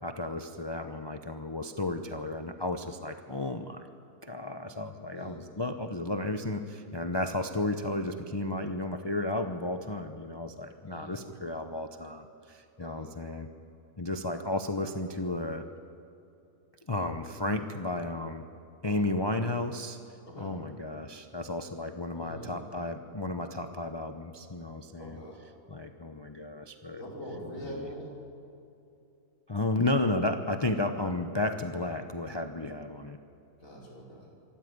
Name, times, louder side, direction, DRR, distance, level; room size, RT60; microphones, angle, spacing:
voice 1, 0.0-3.9 4.2-13.5 14.0-15.7 16.9-18.4 18.8-20.0 20.4-25.2 25.7-27.0 27.6-27.9 29.5-33.2, left 2 dB, 25° left, 7 dB, 0.7 m, -33 dB
voice 2, 10.8-11.2 12.8-13.1 18.8-19.1 20.3-20.6 22.1-22.7 25.0-25.4 27.0-28.1 33.6-34.3, equal, 60° left, -4 dB, 5.3 m, -43 dB
25.0 x 13.5 x 9.5 m, 2.7 s
omnidirectional pair, 1.5 m